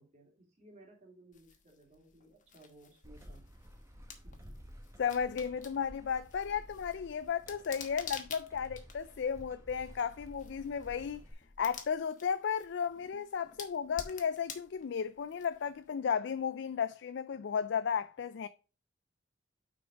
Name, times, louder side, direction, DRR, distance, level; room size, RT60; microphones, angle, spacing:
voice 1, 0.0-3.4 4.2-4.4, right 1 dB, 35° right, 2.6 m, -59 dB
sound 1, 1.3-15.9, left 6 dB, 40° left, 1.2 m, -51 dB
sound 2, 3.0-11.3, equal, 15° right, 1.3 m, -53 dB
voice 2, 5.0-11.2 11.6-18.5, left 7 dB, 60° left, 0.4 m, -34 dB
6.2 x 5.1 x 5.0 m
head